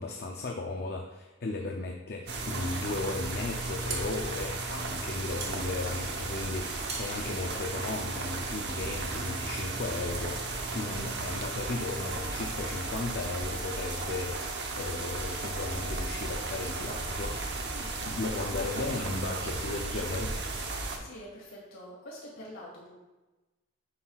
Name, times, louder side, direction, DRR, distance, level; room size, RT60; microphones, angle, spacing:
voice 1, 0.0-17.4 18.1-20.4, left 3 dB, 50° left, 2 dB, 0.5 m, -35 dB
sound 1, 2.3-21.0, right 3 dB, 50° right, 0.9 m, -35 dB
sound 2, 3.9-8.5, right 3 dB, 30° right, 1.1 m, -43 dB
voice 2, 8.1-8.7 10.7-10.9 17.7-19.5 21.0-22.9, left 1 dB, 70° left, -5 dB, 2.1 m, -47 dB
Wind instrument woodwind instrument, 11.1-20.4, left 1 dB, 80° right, 0.6 m, -48 dB
9.6 x 5.6 x 2.4 m, 1.1 s
head